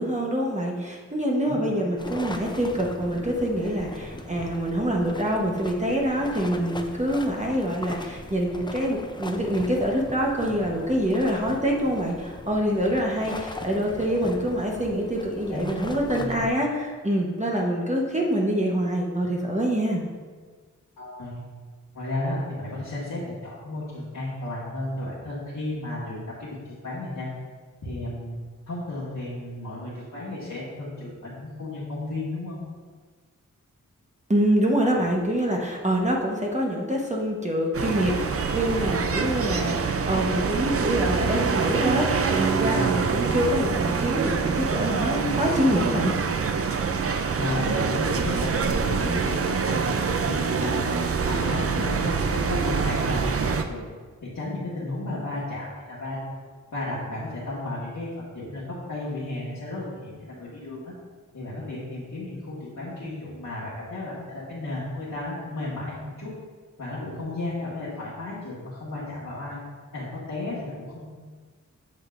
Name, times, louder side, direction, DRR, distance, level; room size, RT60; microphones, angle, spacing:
voice 1, 0.0-20.0 34.3-46.1, equal, 20° right, -2 dB, 1.0 m, -25 dB
voice 2, 1.4-1.8 15.5-15.7 16.1-16.4 21.0-21.4 21.9-27.3 27.8-28.4 28.7-32.6 42.6-43.0 47.4-53.8 54.2-56.2 56.7-60.9 61.3-66.3 66.8-69.6 69.9-71.1, left 2 dB, 75° left, -10 dB, 1.6 m, -33 dB
sound 1, 2.0-16.5, left 2 dB, 15° left, 0.5 m, -39 dB
sound 2, 37.7-53.6, right 5 dB, 45° right, 0.5 m, -25 dB
8.1 x 6.4 x 2.5 m, 1.5 s
wide cardioid pair, 85°, 31 cm